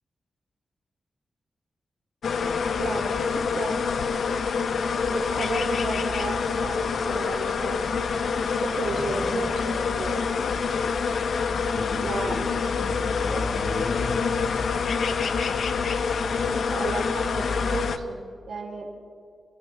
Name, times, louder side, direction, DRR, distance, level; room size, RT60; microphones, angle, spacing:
sound 1, 2.2-18.0, left 5 dB, 80° left, 0.7 m, -26 dB
voice 1, 2.8-3.8 5.1-7.9 8.6-10.2 12.0-12.3 16.4-18.9, right 3 dB, 90° right, 0 dB, 3.0 m, -33 dB
voice 2, 8.8-9.5 11.5-12.5 12.8-14.3 14.7-14.9, left 2 dB, 40° left, -2 dB, 4.3 m, -37 dB
28.5 x 14.0 x 3.4 m, 2.3 s
wide cardioid pair, 95°, 0 cm